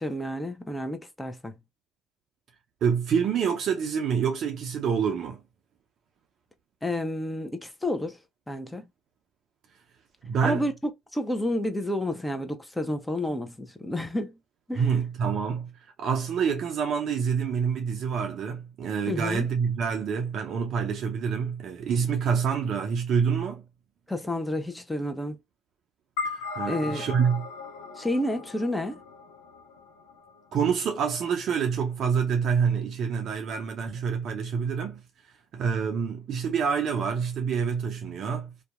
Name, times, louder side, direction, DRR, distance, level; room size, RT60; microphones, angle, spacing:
voice 1, 0.0-1.5 6.8-8.2 8.5-8.9 10.4-14.4 14.7-14.9 19.1-19.5 24.1-25.4 26.7-27.0 28.0-29.0, left 1 dB, 10° left, 0.7 m, -30 dB
voice 2, 2.8-5.4 10.2-10.6 14.8-15.7 16.0-23.6 26.2-27.5 30.5-35.0 35.5-38.5, right 6 dB, 55° right, 0.5 m, -27 dB
sound 1, 26.2-30.7, left 4 dB, 80° left, 0.6 m, -37 dB
2.7 x 2.3 x 2.4 m
hypercardioid pair, 60°, 0 cm